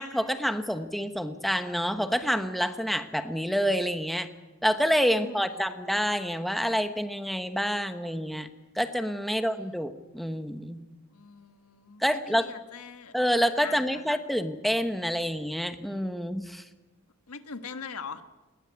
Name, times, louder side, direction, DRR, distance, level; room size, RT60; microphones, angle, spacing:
voice 1, 0.0-4.3 4.6-8.5 8.7-10.8 12.0-12.5 13.1-16.6, equal, ahead, 8 dB, 1.0 m, -28 dB
voice 2, 5.1-5.6 9.3-9.7 11.1-13.1 13.6-14.1 17.3-18.2, left 5 dB, 85° left, 9 dB, 1.5 m, -43 dB
20.5 x 18.5 x 9.5 m, 1.1 s
head